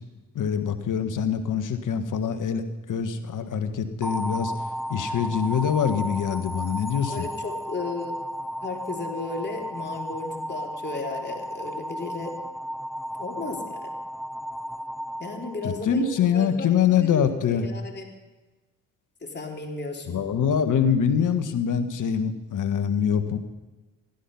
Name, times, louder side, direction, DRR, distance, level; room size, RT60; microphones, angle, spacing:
voice 1, 0.4-2.6 2.9-4.5 4.9-7.3 15.6-17.7 20.1-23.4, left 7 dB, 50° left, 9 dB, 1.6 m, -24 dB
sound 1, 4.0-16.2, equal, ahead, 0.4 m, -34 dB
voice 2, 7.1-8.2 8.6-12.4 13.2-13.9 15.2-17.2 17.5-18.1 19.2-20.2, left 3 dB, 25° left, 1 dB, 3.4 m, -34 dB
15.5 x 12.5 x 5.6 m, 1.2 s
hypercardioid pair, 50°, 40 cm